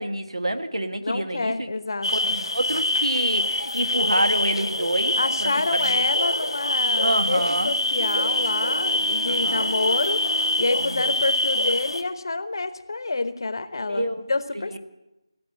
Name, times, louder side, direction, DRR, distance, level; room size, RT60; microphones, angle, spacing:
voice 1, 0.0-1.7 2.1-6.1 7.0-7.7 9.2-9.7 10.8-11.0 13.9-14.2 14.7-14.8, right 1 dB, 90° right, 8 dB, 1.4 m, -28 dB
voice 2, 1.0-2.3 5.2-14.8, left 3 dB, 55° left, 11 dB, 1.1 m, -28 dB
sound 1, 2.0-12.0, left 1 dB, 85° left, 1.2 m, -25 dB
sound 2, 7.9-10.9, right 3 dB, 65° right, 0.8 m, -37 dB
16.0 x 8.1 x 8.7 m, 0.97 s
figure-of-eight pair, 165°, 3 cm